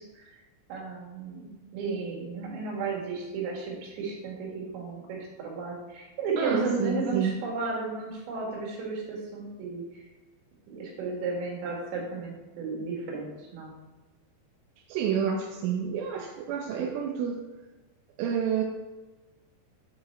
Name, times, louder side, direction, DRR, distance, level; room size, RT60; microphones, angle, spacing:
voice 1, 0.7-10.0 10.7-13.7, right 4 dB, 70° right, -3 dB, 4.0 m, -34 dB
voice 2, 6.4-7.4 14.9-17.4 18.2-18.6, right 7 dB, 90° right, 0 dB, 3.2 m, -29 dB
8.1 x 4.8 x 4.3 m, 1.2 s
omnidirectional pair, 5.5 m